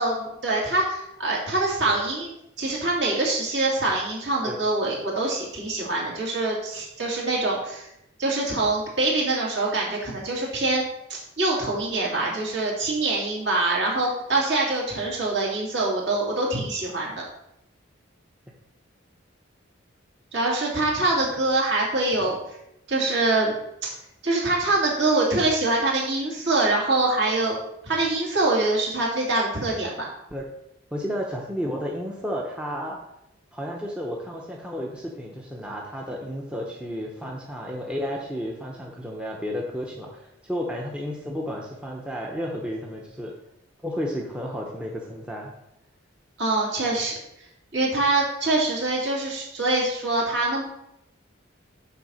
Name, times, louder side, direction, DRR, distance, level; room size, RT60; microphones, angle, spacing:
voice 1, 0.0-2.3 2.6-7.9 8.2-10.8 11.1-17.1 20.3-22.4 22.9-23.5 24.2-27.6 27.8-30.1 46.4-47.1 47.7-50.6, right 2 dB, 55° right, -3 dB, 2.6 m, -24 dB
voice 2, 30.9-33.0 33.5-43.3 43.8-45.5, equal, 5° right, -2 dB, 0.7 m, -32 dB
6.8 x 4.3 x 6.3 m, 0.83 s
head